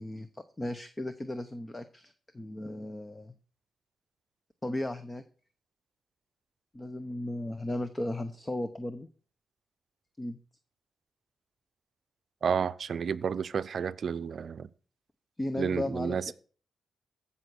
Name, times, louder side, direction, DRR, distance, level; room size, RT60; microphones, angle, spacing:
voice 1, 0.0-3.3 4.6-5.2 6.7-9.1 10.2-10.4 15.4-16.3, left 1 dB, 15° left, 0.8 m, -35 dB
voice 2, 12.4-14.7 15.6-16.3, right 6 dB, 55° right, 0.6 m, -31 dB
15.0 x 5.6 x 6.2 m
cardioid pair, 110°, 0 cm